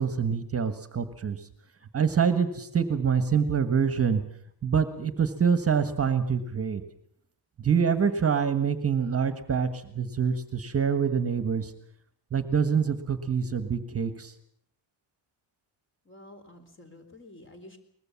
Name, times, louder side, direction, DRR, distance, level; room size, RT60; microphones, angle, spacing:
voice 1, 0.0-1.4 1.9-4.2 4.6-6.8 7.6-11.7 12.3-14.3, right 6 dB, 30° right, 10 dB, 1.5 m, -26 dB
voice 2, 16.1-17.8, left 1 dB, 25° left, 7 dB, 3.9 m, -49 dB
23.0 x 20.5 x 7.2 m, 0.67 s
cardioid pair, 155°, 47 cm